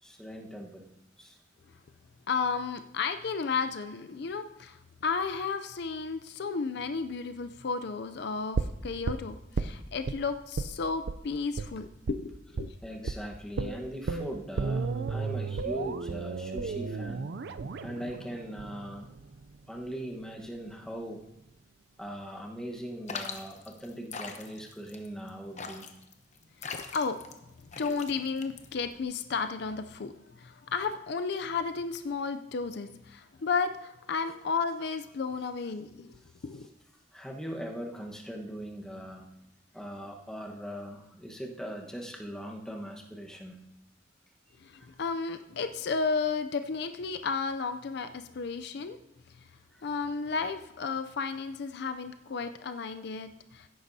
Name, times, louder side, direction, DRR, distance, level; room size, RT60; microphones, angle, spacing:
voice 1, 0.0-0.9 1.2-1.4 12.8-17.3 17.8-19.1 19.7-21.2 22.0-25.9 37.1-39.2 39.7-43.6 44.8-45.0 49.7-49.9, equal, 5° left, 0 dB, 1.2 m, -40 dB
voice 2, 2.3-12.7 26.6-27.2 27.8-36.2 36.4-36.7 44.6-49.0 49.8-53.7, left 5 dB, 60° left, 9 dB, 0.4 m, -33 dB
sound 1, 8.5-10.2 10.6-10.8 11.1-11.2 11.6-11.7 12.1-12.2 12.6-12.8 13.1-13.2 13.6-19.6 19.9-20.0, right 4 dB, 60° right, 0.4 m, -34 dB
sound 2, 23.1-29.0, left 5 dB, 40° left, 0.9 m, -42 dB
16.0 x 9.5 x 2.7 m, 0.87 s
head